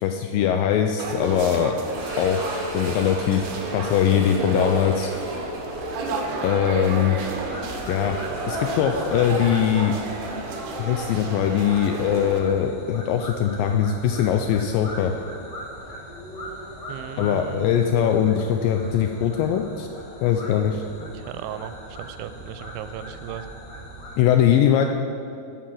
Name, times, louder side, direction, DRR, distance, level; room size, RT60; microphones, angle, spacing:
voice 1, 0.0-1.8 2.2-2.4 2.7-3.4 3.7-5.1 6.4-7.2 7.9-8.2 8.5-10.0 10.8-15.1 17.2-19.9 20.2-20.8 24.2-24.9, left 9 dB, 85° left, 5 dB, 2.0 m, -21 dB
sound 1, 1.0-12.4, right 3 dB, 65° right, 2.2 m, -31 dB
sound 2, 1.8-10.7 11.0-11.1 11.7-11.8 14.4-14.5, right 1 dB, 35° right, 1.6 m, -36 dB
sound 3, 7.2-24.2, equal, 45° left, 1.3 m, -40 dB
voice 2, 16.9-17.9 21.0-21.7 22.0-23.5, right 11 dB, 85° right, 12 dB, 2.5 m, -36 dB
9.1 x 6.6 x 7.6 m, 2.7 s
omnidirectional pair, 4.5 m